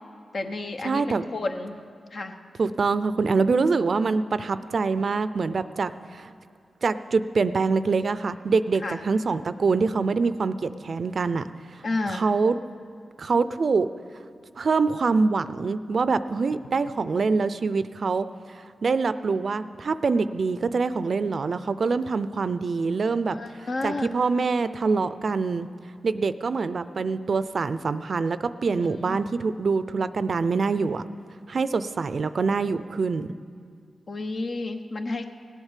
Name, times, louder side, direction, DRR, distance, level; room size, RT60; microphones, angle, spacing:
voice 1, 0.3-1.8 2.1-2.4 8.8-9.0 11.8-12.2 23.3-24.2 28.8-29.2 34.1-35.2, left 2 dB, 65° left, 5 dB, 1.0 m, -31 dB
voice 2, 0.8-1.2 2.6-6.3 6.8-11.4 12.1-12.6 13.2-13.9 14.6-25.7 26.0-31.0 31.5-33.3, right 4 dB, 65° right, 13 dB, 0.5 m, -25 dB
18.0 x 8.1 x 7.4 m, 2.2 s
cardioid pair, 65°, 0 cm